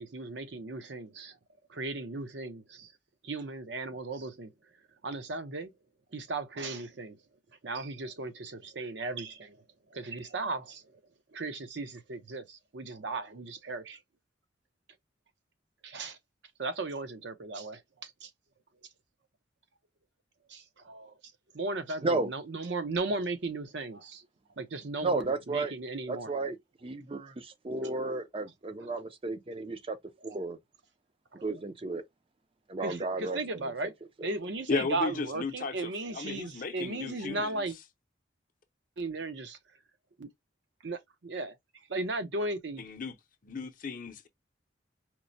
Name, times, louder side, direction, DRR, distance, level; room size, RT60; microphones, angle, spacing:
voice 1, 0.0-1.4 1.7-2.9 3.2-4.5 5.0-5.7 6.1-7.2 7.6-9.6 9.9-10.8 11.3-14.0 15.8-16.2 16.6-18.3 20.5-21.1 21.5-24.2 24.6-26.3 31.3-31.5 32.8-33.9 34.2-37.8 39.0-39.6 40.2-40.3 40.8-41.5 41.9-42.8, right 3 dB, 70° right, 0.7 m, -36 dB
voice 2, 25.0-25.7 26.1-30.0 30.2-30.6 31.4-32.0 32.7-33.7 34.2-34.3, right 3 dB, 30° right, 0.5 m, -33 dB
voice 3, 34.7-37.6 42.8-43.1 43.4-44.3, left 4 dB, 45° left, 0.6 m, -35 dB
4.4 x 2.1 x 2.6 m
head